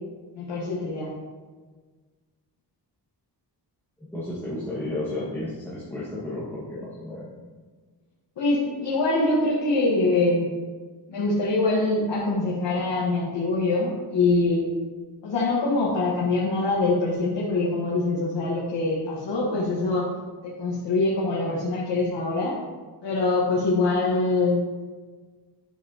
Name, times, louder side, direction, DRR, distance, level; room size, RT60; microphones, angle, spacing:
voice 1, 0.3-1.1 8.4-10.5 11.1-14.7 15.2-20.1 20.6-22.5 23.0-24.6, left 2 dB, 80° left, -4 dB, 1.4 m, -24 dB
voice 2, 4.1-7.3, left 1 dB, 5° left, -10 dB, 1.5 m, -32 dB
9.7 x 6.6 x 2.8 m, 1.4 s
wide cardioid pair, 170°, 42 cm